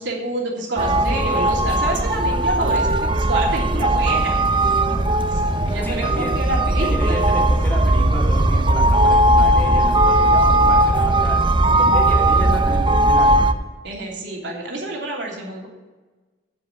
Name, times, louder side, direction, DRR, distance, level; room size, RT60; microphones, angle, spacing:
voice 1, 0.0-4.4 4.9-7.2 13.8-15.7, right 2 dB, 75° right, -1 dB, 3.0 m, -28 dB
sound 1, 0.8-13.5, right 1 dB, 25° right, 0.6 m, -17 dB
sound 2, 4.0-11.7, left 1 dB, 40° left, 1.2 m, -39 dB
voice 2, 5.8-6.4 6.8-11.4 11.8-13.5, equal, 10° left, -2 dB, 2.5 m, -31 dB
15.0 x 5.8 x 6.8 m, 1.2 s
head